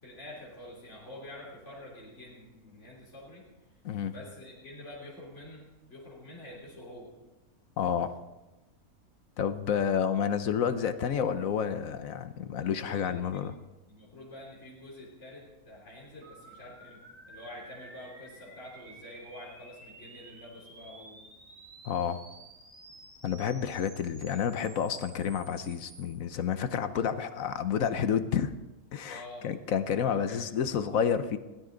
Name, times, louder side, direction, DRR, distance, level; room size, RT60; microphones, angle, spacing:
voice 1, 0.0-3.5 4.1-7.2 12.6-13.4 13.9-21.2 29.1-29.5 30.0-30.4, left 1 dB, 50° left, -4 dB, 3.6 m, -47 dB
voice 2, 7.8-8.2 9.4-13.5 21.8-22.2 23.2-28.5 28.9-31.4, left 8 dB, 65° left, 11 dB, 1.2 m, -30 dB
sound 1, 16.2-26.1, right 2 dB, 75° right, 3.3 m, -52 dB
21.0 x 16.5 x 3.9 m, 1.1 s
omnidirectional pair, 1.6 m